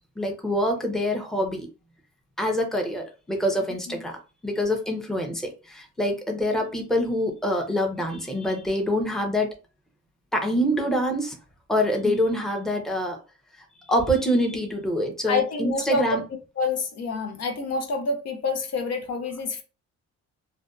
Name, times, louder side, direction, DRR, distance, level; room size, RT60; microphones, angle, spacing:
voice 1, 0.2-1.7 2.4-9.5 10.3-11.4 11.7-13.2 13.8-16.2, equal, ahead, 0.6 m, -25 dB
voice 2, 15.3-16.2 16.6-19.6, left 4 dB, 55° left, 0.6 m, -27 dB
2.5 x 2.2 x 2.3 m
cardioid pair, 90°, 30 cm